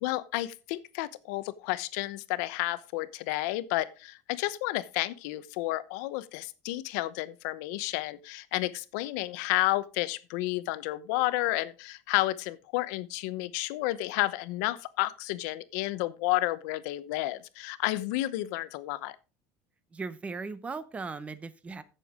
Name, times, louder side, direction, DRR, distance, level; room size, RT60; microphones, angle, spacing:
voice 1, 0.0-19.2, left 18 dB, 80° left, 0.9 m, -31 dB
voice 2, 19.9-21.8, right 4 dB, 15° right, 0.8 m, -38 dB
15.5 x 6.9 x 3.7 m
cardioid pair, 165°, 9 cm